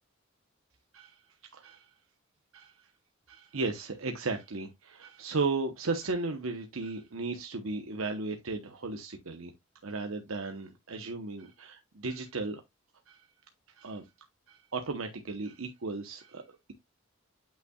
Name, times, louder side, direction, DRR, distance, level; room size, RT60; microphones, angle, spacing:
voice 1, 1.5-1.9 2.5-2.9 3.3-9.5 9.8-12.6 13.1-13.3 13.8-14.1 14.5-16.7, right 3 dB, 90° right, 0.9 m, -35 dB
8.8 x 5.5 x 2.3 m
head